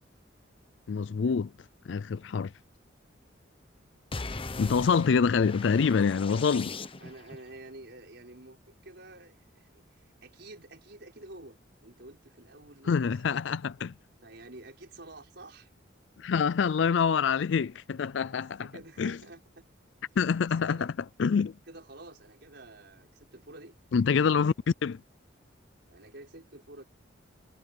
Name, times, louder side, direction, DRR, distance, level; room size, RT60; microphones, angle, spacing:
voice 1, 0.9-1.5 1.9-2.5 4.6-6.7 12.9-13.9 16.2-18.7 19.0-19.2 20.2-20.9 21.2-21.6 23.9-24.5 24.8-25.0, left 6 dB, 65° left, 0.4 m, -26 dB
sound 1, 4.1-7.4, left 3 dB, 30° left, 1.0 m, -40 dB
voice 2, 6.1-6.6 7.0-13.4 14.2-15.7 18.2-19.6 20.4-20.9 21.7-23.8 25.9-26.8, right 2 dB, 60° right, 5.8 m, -49 dB
head